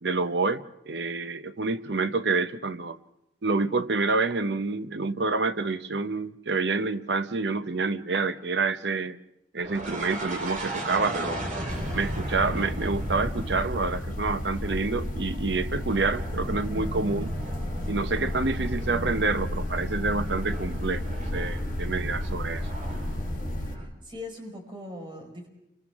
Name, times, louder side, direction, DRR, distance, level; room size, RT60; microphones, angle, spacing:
voice 1, 0.0-3.0 3.4-9.2 9.5-11.4 11.9-17.3 17.9-21.0 21.3-22.7, right 3 dB, 75° right, 0.9 m, -28 dB
sound 1, 9.6-23.9, right 1 dB, 50° right, 3.8 m, -37 dB
sound 2, 11.7-23.8, left 1 dB, 50° left, 1.1 m, -33 dB
voice 2, 23.6-25.5, left 2 dB, 30° right, 5.1 m, -41 dB
30.0 x 25.0 x 3.6 m
head